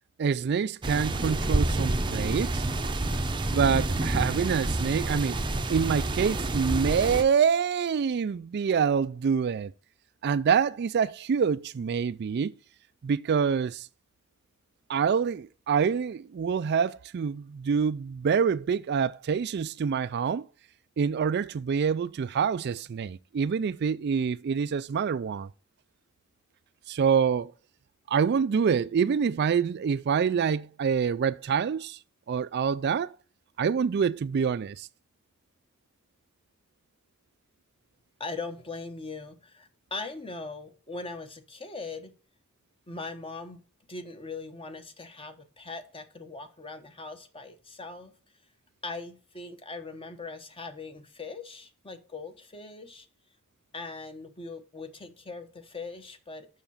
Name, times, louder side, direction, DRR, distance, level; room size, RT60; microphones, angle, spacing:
voice 1, 0.2-2.6 3.5-5.4 5.7-9.7 10.2-12.5 13.0-13.9 14.9-20.5 21.0-25.5 26.9-27.5 28.1-32.0 32.3-33.1 33.6-34.9, right 6 dB, 50° right, 0.3 m, -26 dB
sound 1, 0.8-7.2, right 2 dB, 20° right, 0.7 m, -28 dB
voice 2, 38.2-42.1 42.9-43.6 43.9-48.1 48.8-53.1 53.7-56.5, left 3 dB, 25° left, 1.1 m, -40 dB
7.0 x 6.4 x 5.5 m
head